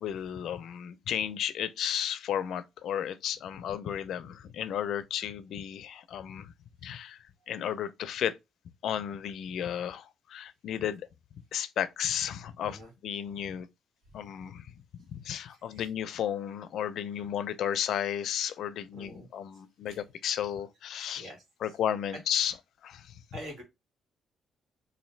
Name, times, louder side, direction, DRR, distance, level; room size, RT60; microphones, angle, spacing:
voice 1, 0.0-6.5 6.8-8.4 8.8-11.1 11.5-13.7 14.1-21.3 21.6-22.6 22.8-23.2, left 9 dB, 75° left, 0.4 m, -33 dB
voice 2, 18.9-19.3 19.9-20.0 21.2-21.4 23.3-23.6, equal, 70° right, 1.7 m, -44 dB
4.0 x 2.5 x 3.1 m
cardioid pair, 90°, 0 cm